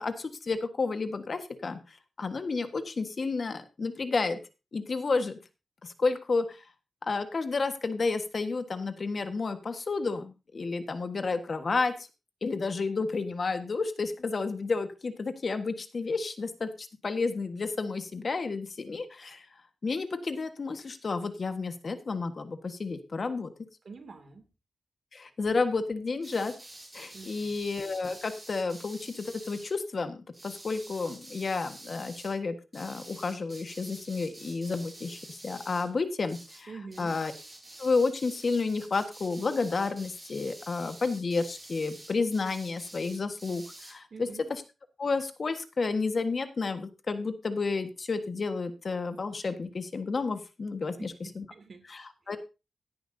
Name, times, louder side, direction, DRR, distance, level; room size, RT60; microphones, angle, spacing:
voice 1, 0.0-4.4 4.7-5.4 5.8-6.6 7.1-12.1 12.4-19.5 19.8-23.5 25.1-26.5 26.9-36.7 37.0-37.3 37.8-44.6 45.0-51.4 51.9-52.4, left 4 dB, 45° left, 8 dB, 1.4 m, -31 dB
voice 2, 23.8-24.5 27.1-27.5 36.7-37.2 44.1-44.5 51.0-51.9, right 4 dB, 55° right, 7 dB, 2.5 m, -46 dB
sound 1, 26.2-29.7 30.3-32.3 32.7-35.9 36.2-36.6 36.9-43.9, right 1 dB, 15° right, 7.2 m, -48 dB
16.5 x 10.5 x 2.7 m, 0.28 s
wide cardioid pair, 110°, 0 cm